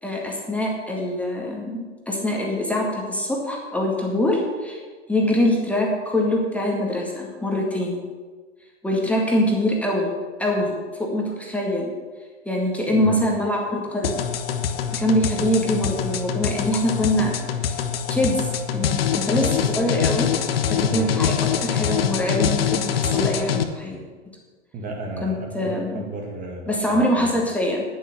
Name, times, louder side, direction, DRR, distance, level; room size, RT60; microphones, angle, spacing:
voice 1, 0.0-4.8 5.1-8.0 8.8-10.1 10.4-11.9 12.5-14.2 14.9-17.4 17.7-17.8 18.1-18.5 18.7-20.3 20.7-21.3 21.6-24.0 25.2-26.0 26.7-27.8, left 1 dB, 5° left, -1 dB, 2.0 m, -24 dB
voice 2, 12.9-13.4 20.8-21.3 24.7-27.4, right 2 dB, 20° right, 1 dB, 1.8 m, -33 dB
sound 1, 14.0-23.6, left 8 dB, 55° left, 1.2 m, -24 dB
10.0 x 10.0 x 6.8 m, 1.4 s
figure-of-eight pair, 105°, 36 cm